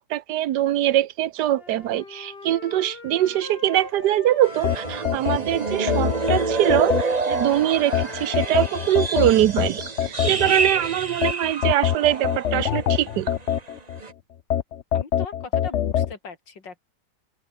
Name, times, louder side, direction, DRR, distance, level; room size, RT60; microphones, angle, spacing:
voice 1, 0.0-13.3, right 13 dB, 70° right, 1.4 m, -23 dB
Wind instrument woodwind instrument, 1.5-5.2 5.5-9.5, left 4 dB, 35° left, 2.0 m, -42 dB
sound 1, 4.4-13.0 13.3-13.6 14.0-14.1, right 4 dB, 25° right, 1.2 m, -28 dB
sound 2, 4.6-7.4 7.9-10.7 11.2-14.0 14.5-16.1, left 10 dB, 55° left, 0.8 m, -24 dB
voice 2, 14.9-16.8, left 5 dB, 85° left, 3.5 m, -39 dB
open air
omnidirectional pair, 1.9 m